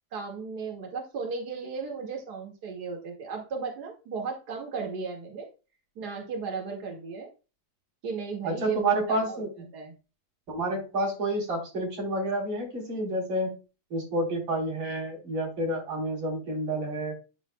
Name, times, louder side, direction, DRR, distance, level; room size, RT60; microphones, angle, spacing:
voice 1, 0.1-5.5 5.9-7.3 8.0-9.4 9.7-9.9, right 5 dB, 70° right, 1 dB, 0.9 m, -35 dB
voice 2, 8.4-9.5 10.5-13.6 13.9-17.1, right 1 dB, 30° right, 1 dB, 4.0 m, -29 dB
11.0 x 7.2 x 2.2 m, 0.31 s
omnidirectional pair, 5.1 m